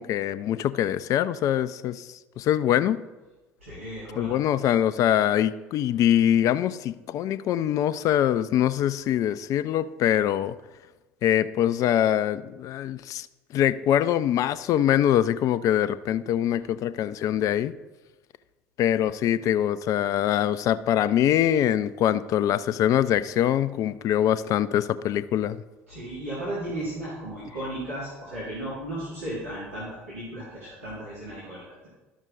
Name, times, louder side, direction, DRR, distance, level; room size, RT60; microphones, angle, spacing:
voice 1, 0.0-2.1 2.4-3.0 4.2-10.5 11.2-13.3 13.5-17.7 18.8-25.6, left 11 dB, 50° left, 15 dB, 0.4 m, -23 dB
voice 2, 3.6-4.4 25.9-31.9, right 1 dB, 85° right, -10 dB, 2.7 m, -35 dB
12.0 x 6.2 x 4.0 m, 1.2 s
figure-of-eight pair, 60°, 7 cm